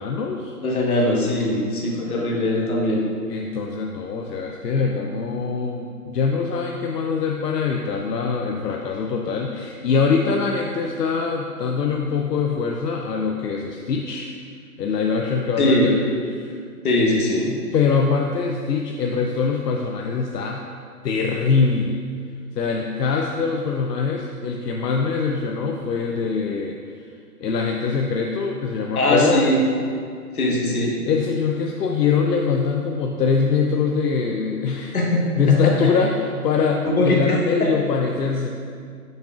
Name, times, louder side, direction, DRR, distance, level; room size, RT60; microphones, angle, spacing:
voice 1, 0.0-0.5 3.3-14.3 14.8-15.9 16.3-16.6 17.5-20.7 21.0-22.0 22.5-27.1 27.4-29.5 31.1-35.0 35.3-38.5, left 5 dB, 85° left, 1 dB, 0.7 m, -23 dB
voice 2, 0.6-3.0 15.6-15.9 16.8-17.5 28.9-29.6 30.3-30.9 34.9-35.6 36.8-37.2, left 1 dB, 65° left, -2 dB, 1.5 m, -20 dB
6.7 x 6.5 x 2.4 m, 2.2 s
hypercardioid pair, 165°, 47 cm